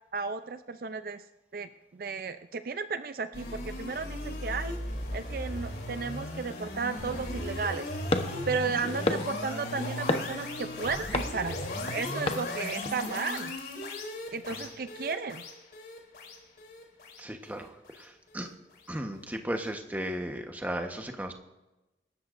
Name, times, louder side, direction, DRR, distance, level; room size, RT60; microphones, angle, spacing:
voice 1, 0.1-1.2 1.5-4.7 5.1-7.9 8.5-11.6 11.9-13.5 14.3-15.4, right 5 dB, 55° right, 10 dB, 0.5 m, -34 dB
sound 1, 3.3-18.5, left 1 dB, 65° left, 3.4 m, -37 dB
sound 2, 8.1-13.2, left 2 dB, 30° left, 1.0 m, -34 dB
voice 2, 17.2-17.7 18.0-18.5 18.9-21.3, right 1 dB, 10° right, 4 dB, 1.1 m, -35 dB
25.5 x 13.0 x 2.6 m, 1.0 s
head